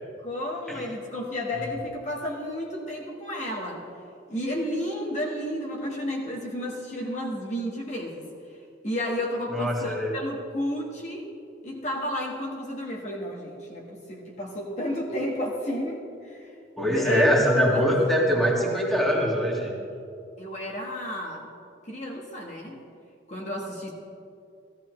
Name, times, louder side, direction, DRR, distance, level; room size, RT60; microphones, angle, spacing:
voice 1, 0.2-3.8 4.3-8.3 8.8-11.3 11.6-16.5 16.8-17.3 17.6-17.8 20.4-21.5 21.8-22.8 23.3-23.9, left 1 dB, 40° left, -2 dB, 1.4 m, -32 dB
voice 2, 9.5-10.1 16.8-19.7, equal, ahead, -3 dB, 1.8 m, -23 dB
15.5 x 14.0 x 3.2 m, 2.5 s
head